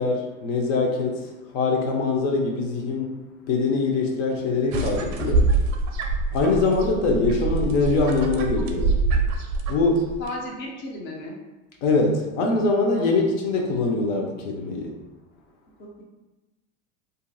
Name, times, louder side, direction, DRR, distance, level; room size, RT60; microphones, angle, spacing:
voice 1, 0.0-3.2 3.5-5.5 6.3-9.0 9.7-10.2 11.8-15.0, left 3 dB, 65° left, 0 dB, 0.7 m, -23 dB
sound 1, 4.7-10.3, right 3 dB, 45° right, 0.5 m, -24 dB
voice 2, 10.2-11.3 13.0-13.2 15.8-16.0, left 1 dB, 30° left, -1 dB, 0.5 m, -35 dB
2.7 x 2.5 x 2.3 m, 1.1 s
hypercardioid pair, 95°, 40 cm